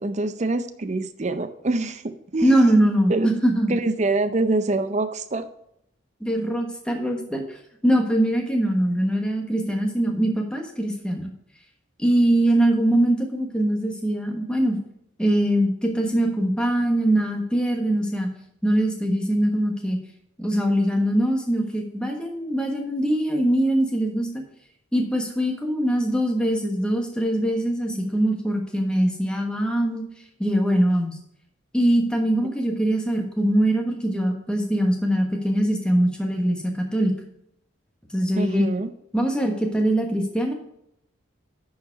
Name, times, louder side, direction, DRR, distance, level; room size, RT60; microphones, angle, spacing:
voice 1, 0.0-3.3 3.7-5.5 38.4-38.9, right 2 dB, 35° right, 10 dB, 0.6 m, -25 dB
voice 2, 2.4-3.7 6.2-11.3 12.0-14.8 15.2-18.3 18.6-20.0 20.4-24.4 24.9-30.0 30.4-31.2 31.7-37.1 38.1-38.7 39.1-40.5, right 1 dB, 5° left, 2 dB, 1.2 m, -22 dB
10.5 x 4.8 x 4.6 m, 0.77 s
head